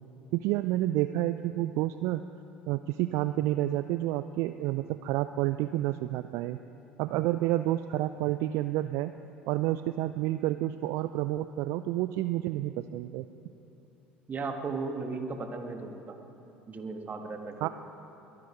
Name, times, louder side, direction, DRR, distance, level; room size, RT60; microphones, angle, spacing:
voice 1, 0.3-2.2 2.7-6.6 7.0-9.1 9.5-13.3 17.6-17.7, right 15 dB, 60° right, 12 dB, 0.3 m, -29 dB
voice 2, 14.3-16.2 16.7-17.7, right 4 dB, 30° right, 5 dB, 1.5 m, -36 dB
21.5 x 9.5 x 5.0 m, 3.0 s
figure-of-eight pair, 65°, 5 cm